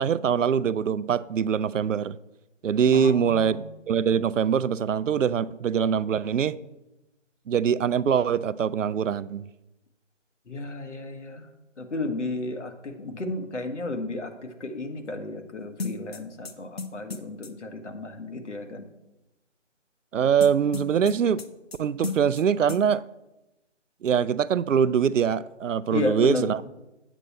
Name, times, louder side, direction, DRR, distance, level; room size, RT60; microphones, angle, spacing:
voice 1, 0.0-2.2 2.6-6.6 7.5-9.5 20.1-21.4 21.8-23.0 24.0-26.6, right 7 dB, 90° right, 0.5 m, -23 dB
voice 2, 2.9-3.6 10.5-11.5 11.8-18.9 25.9-26.7, left 2 dB, 70° left, 1.5 m, -33 dB
sound 1, 15.8-17.5 20.4-21.8 22.0-22.4 22.7-22.8, left 4 dB, 55° left, 0.9 m, -34 dB
8.4 x 8.2 x 4.2 m
figure-of-eight pair, 165°, 37 cm